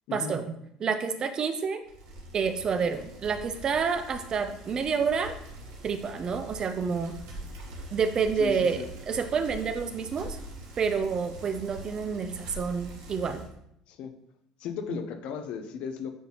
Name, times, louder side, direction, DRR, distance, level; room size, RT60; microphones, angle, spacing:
voice 1, 0.1-0.5 0.8-1.8 2.3-5.3 5.8-7.2 7.9-10.4 10.8-13.4 14.9-15.0, right 6 dB, 40° right, 9 dB, 0.7 m, -29 dB
Bicycle, 1.8-13.5, right 2 dB, 80° right, 1.4 m, -43 dB
voice 2, 8.4-8.9 13.9-14.1 14.6-16.1, left 7 dB, 65° left, 7 dB, 0.8 m, -36 dB
9.1 x 4.0 x 3.0 m, 0.74 s
supercardioid pair, 90°, 2 cm